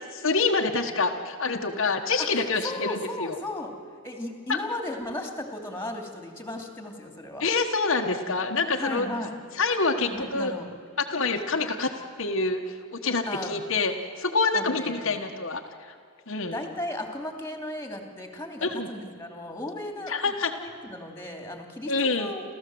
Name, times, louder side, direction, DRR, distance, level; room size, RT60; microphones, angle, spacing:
voice 1, 0.1-3.4 4.5-4.6 7.4-9.1 9.5-10.5 11.0-11.9 12.2-15.9 16.3-16.6 18.6-18.9 20.1-20.5 21.9-22.3, left 3 dB, 60° left, 3 dB, 1.4 m, -26 dB
voice 2, 2.2-3.7 4.0-7.4 8.8-9.3 10.1-10.7 13.3-13.5 14.5-15.2 16.4-22.4, left 1 dB, 10° left, 4 dB, 2.8 m, -36 dB
29.5 x 14.5 x 7.8 m, 2.3 s
head